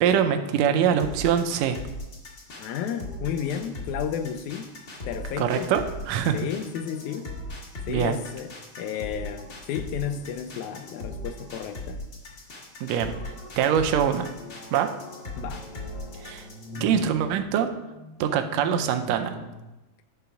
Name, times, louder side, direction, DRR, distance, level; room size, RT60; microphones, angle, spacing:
voice 1, 0.0-1.8 5.4-6.4 7.9-8.2 12.8-13.2 13.6-14.3 14.7-14.9 16.2-16.5 16.8-17.7 18.2-19.4, right 8 dB, 80° right, 6 dB, 1.8 m, -23 dB
sound 1, 1.0-17.0, left 1 dB, 40° left, 1.5 m, -38 dB
voice 2, 2.6-4.7 5.1-5.7 6.3-7.3 7.9-12.0 15.4-15.7, left 8 dB, 85° left, 9 dB, 2.0 m, -32 dB
sound 2, 10.0-11.8 12.4-12.8 13.6-19.5, left 3 dB, 65° left, 1.1 m, -42 dB
10.5 x 4.0 x 5.7 m, 1.0 s
omnidirectional pair, 3.3 m